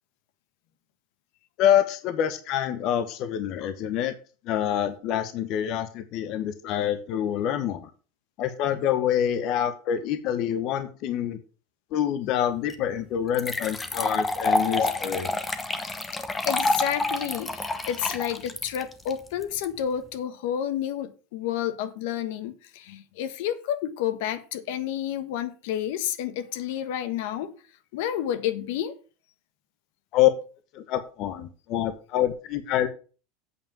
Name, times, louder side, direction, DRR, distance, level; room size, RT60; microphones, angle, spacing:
voice 1, 1.6-4.1 4.4-7.9 8.4-11.4 11.9-15.3 30.1-30.3 30.7-32.9, left 10 dB, 45° left, 10 dB, 1.1 m, -26 dB
sound 1, 12.7-12.8 13.3-19.6, left 2 dB, 10° left, 0.9 m, -28 dB
voice 2, 16.4-27.5 27.9-28.9, left 10 dB, 70° left, 11 dB, 1.2 m, -30 dB
8.4 x 5.0 x 7.3 m, 0.37 s
supercardioid pair, 150°, 0 cm